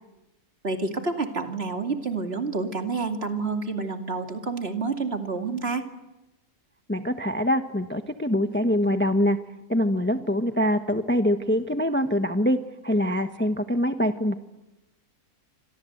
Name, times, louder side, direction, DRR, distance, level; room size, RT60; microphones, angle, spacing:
voice 1, 0.6-5.9, right 4 dB, 40° right, 5 dB, 2.7 m, -29 dB
voice 2, 6.9-9.4 9.7-12.6 12.8-14.4, equal, 10° left, 8 dB, 1.0 m, -24 dB
29.0 x 26.0 x 8.0 m, 0.99 s
omnidirectional pair, 1.6 m